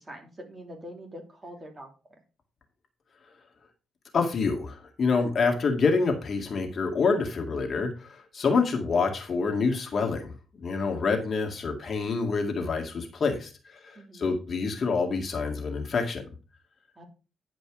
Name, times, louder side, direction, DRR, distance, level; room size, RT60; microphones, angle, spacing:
voice 1, 0.0-1.9 13.9-14.3 17.0-17.1, equal, 25° right, 2 dB, 3.0 m, -44 dB
voice 2, 4.1-13.5 13.8-16.2, left 4 dB, 45° left, 3 dB, 2.0 m, -27 dB
10.0 x 5.2 x 4.8 m, 0.33 s
cardioid pair, 90°, 0 cm